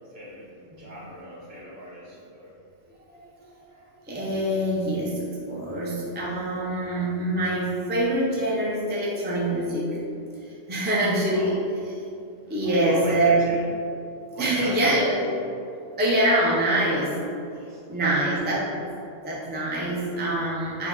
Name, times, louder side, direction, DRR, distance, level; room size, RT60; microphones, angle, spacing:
voice 1, 0.1-0.5 0.8-2.5 3.7-3.9 11.3-11.6 12.6-13.6 14.3-15.0 17.5-18.2 18.6-18.7, equal, 55° right, -8 dB, 1.6 m, -38 dB
voice 2, 4.1-9.9 10.7-11.6 12.5-13.4 14.4-15.2 16.0-17.1 17.9-18.7 19.2-20.9, right 1 dB, 15° right, -5 dB, 0.4 m, -24 dB
6.0 x 2.2 x 3.9 m, 2.6 s
omnidirectional pair, 1.3 m